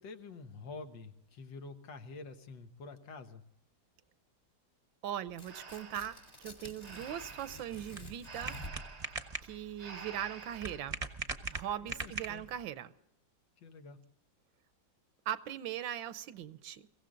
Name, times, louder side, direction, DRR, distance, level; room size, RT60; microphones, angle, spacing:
voice 1, 0.0-3.4 11.8-12.5 13.6-14.0, left 4 dB, 75° left, 1.9 m, -48 dB
voice 2, 5.0-8.6 9.4-11.0 11.5-12.9 15.3-16.8, right 10 dB, 85° right, 1.5 m, -40 dB
Tearing, 5.3-9.0, left 1 dB, 35° left, 2.6 m, -50 dB
Breathing, 5.4-11.0, right 4 dB, 60° right, 0.4 m, -50 dB
sound 1, 7.0-12.7, right 3 dB, 25° right, 0.8 m, -42 dB
23.0 x 16.0 x 3.8 m
omnidirectional pair, 2.0 m